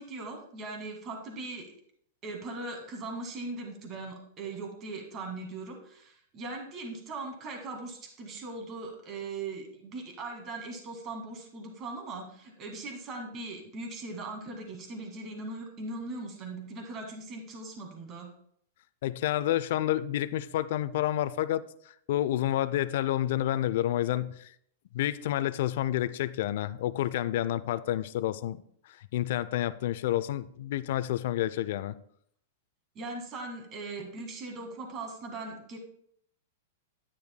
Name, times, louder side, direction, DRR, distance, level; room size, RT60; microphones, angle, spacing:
voice 1, 0.0-1.7 2.2-18.3 33.0-35.8, right 3 dB, 35° right, 1.9 m, -40 dB
voice 2, 19.0-21.6 22.1-24.5 24.9-28.6 29.1-31.9, left 13 dB, 65° left, 0.4 m, -29 dB
9.9 x 9.3 x 2.2 m
hypercardioid pair, 120°, 0 cm